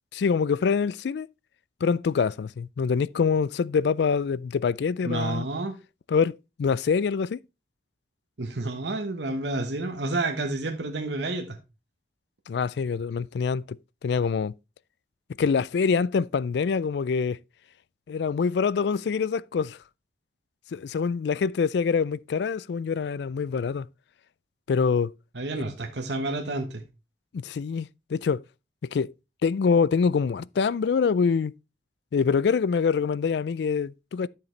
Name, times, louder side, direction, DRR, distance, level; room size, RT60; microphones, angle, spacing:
voice 1, 0.1-1.3 1.8-5.5 6.1-7.4 12.5-14.5 15.4-17.4 18.1-19.8 20.7-23.9 24.7-25.1 27.3-28.4 28.9-29.1 29.4-31.5 32.1-34.3, left 5 dB, 70° left, 0.3 m, -25 dB
voice 2, 5.0-5.8 8.4-11.6 25.3-26.8, right 2 dB, 75° right, 1.2 m, -30 dB
10.5 x 6.7 x 3.2 m
head